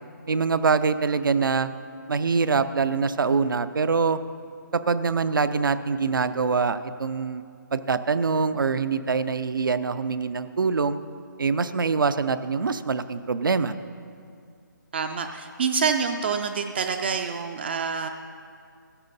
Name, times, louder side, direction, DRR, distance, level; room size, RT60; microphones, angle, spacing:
voice 1, 0.3-1.7 2.1-4.2 4.7-7.4 7.7-11.0 11.4-13.7, right 5 dB, 80° right, 13 dB, 0.6 m, -24 dB
voice 2, 14.9-18.1, right 5 dB, 30° right, 6 dB, 0.4 m, -27 dB
14.0 x 8.8 x 4.0 m, 2.3 s
hypercardioid pair, 160°, 11 cm